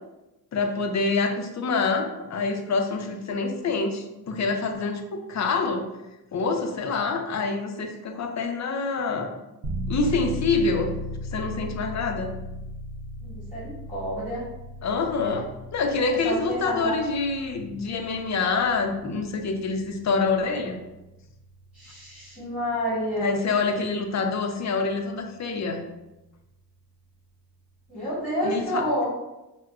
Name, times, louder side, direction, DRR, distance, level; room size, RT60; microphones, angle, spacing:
voice 1, 0.5-5.9 6.3-9.3 9.9-10.9 11.3-12.3 14.8-20.8 23.2-25.8 28.4-28.9, left 4 dB, 45° left, 4 dB, 0.5 m, -26 dB
sound 1, 9.6-26.4, equal, 75° right, 0.6 m, -38 dB
voice 2, 13.2-14.4 16.2-16.9 21.7-23.3 27.9-29.1, equal, ahead, -10 dB, 1.4 m, -29 dB
4.6 x 2.1 x 2.3 m, 0.98 s
cardioid pair, 100°, 40 cm